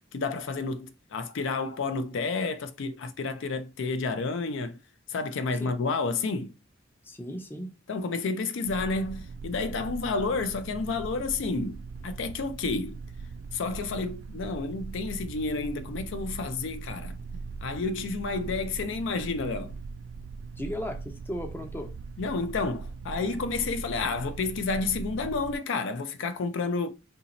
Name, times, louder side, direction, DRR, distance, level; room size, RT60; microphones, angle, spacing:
voice 1, 0.1-4.8 5.1-6.5 7.9-13.0 13.5-17.2 17.6-19.7 22.2-26.9, left 3 dB, 65° left, 0.4 m, -30 dB
voice 2, 7.0-7.8 20.6-21.9, equal, 10° left, 0.5 m, -36 dB
sound 1, 8.7-25.6, right 4 dB, 80° right, 0.3 m, -40 dB
2.8 x 2.7 x 3.9 m
head